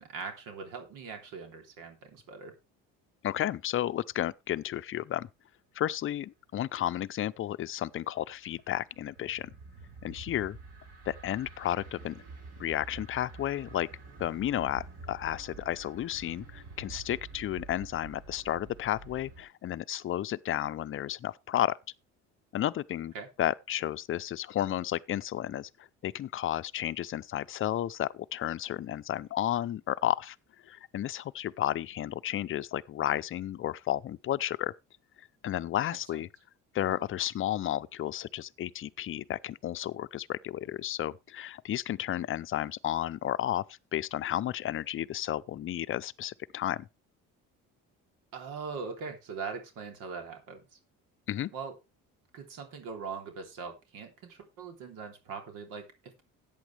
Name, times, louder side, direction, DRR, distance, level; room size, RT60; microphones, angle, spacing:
voice 1, 0.0-2.5 23.1-23.3 36.1-36.2 48.3-50.8 51.5-51.7 52.3-56.2, right 5 dB, 75° right, 3.2 m, -41 dB
voice 2, 3.2-5.3 5.8-9.5 10.0-10.6 11.1-12.2 12.6-13.9 14.2-21.8 22.5-23.1 23.4-25.7 26.0-30.4 30.7-34.7 35.4-36.3 36.7-46.9 51.3-51.5, left 12 dB, 40° left, 0.6 m, -32 dB
sound 1, 7.7-19.4, right 4 dB, 50° right, 5.7 m, -48 dB
13.5 x 9.1 x 3.3 m
cardioid pair, 120°, 32 cm